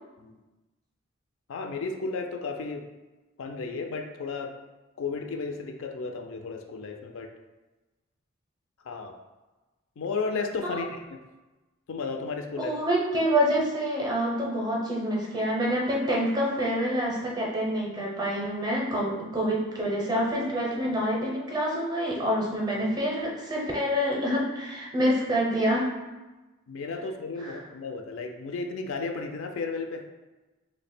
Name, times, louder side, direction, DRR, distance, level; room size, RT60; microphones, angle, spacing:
voice 1, 1.5-2.8 3.4-4.5 5.0-7.3 8.8-9.2 10.0-11.0 11.9-12.8 26.7-30.0, left 4 dB, 65° left, 4 dB, 0.4 m, -33 dB
voice 2, 12.6-25.9 27.4-27.6, equal, 20° right, -3 dB, 0.5 m, -27 dB
3.1 x 2.1 x 4.2 m, 1.1 s
head